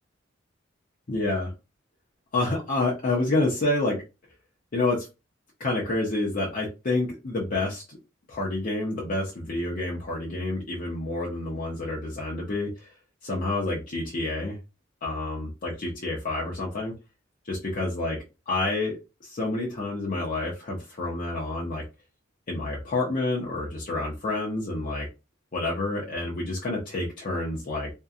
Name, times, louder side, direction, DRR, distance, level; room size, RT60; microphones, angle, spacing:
voice 1, 1.1-1.5 2.3-4.0 4.7-5.1 5.6-8.0 8.3-12.9 13.2-14.6 15.0-16.9 17.4-18.2 18.5-21.8 22.5-25.1 25.5-27.9, left 2 dB, 45° left, -4 dB, 0.6 m, -28 dB
2.6 x 2.2 x 2.3 m, 0.28 s
head